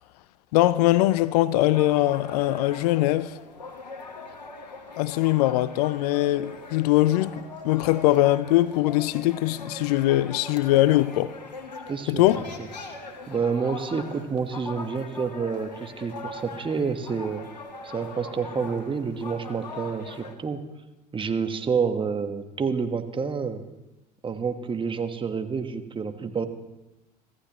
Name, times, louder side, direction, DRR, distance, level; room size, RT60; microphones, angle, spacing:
voice 1, 0.5-3.4 5.0-11.4 12.1-12.5, left 16 dB, 70° left, 0.5 m, -22 dB
sound 1, 1.7-20.3, left 3 dB, 90° left, 1.4 m, -41 dB
voice 2, 11.9-12.2 13.3-17.4 17.8-20.6 21.1-23.6 24.2-26.5, right 5 dB, 25° right, 1.4 m, -28 dB
sound 2, 12.2-14.0, left 1 dB, 40° left, 5.2 m, -51 dB
24.5 x 14.5 x 3.1 m
hypercardioid pair, 70°, 21 cm